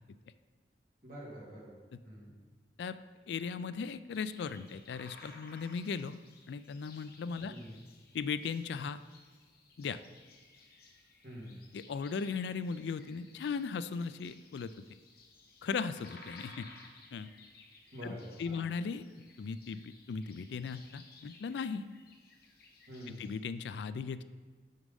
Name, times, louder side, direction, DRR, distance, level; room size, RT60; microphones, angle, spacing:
voice 1, 1.0-1.8 2.0-2.3 7.5-7.8 11.2-11.6 17.9-18.7 22.9-23.3, equal, 50° right, -5 dB, 2.4 m, -46 dB
voice 2, 3.3-6.2 6.5-7.5 8.1-9.0 9.8-10.0 11.7-14.8 15.6-16.7 17.1-17.3 18.0-19.0 19.4-21.9 23.1-24.2, left 5 dB, 75° left, 13 dB, 0.3 m, -37 dB
sound 1, 4.1-23.4, left 3 dB, 60° left, 1.0 m, -58 dB
6.5 x 6.3 x 5.3 m, 1.4 s
head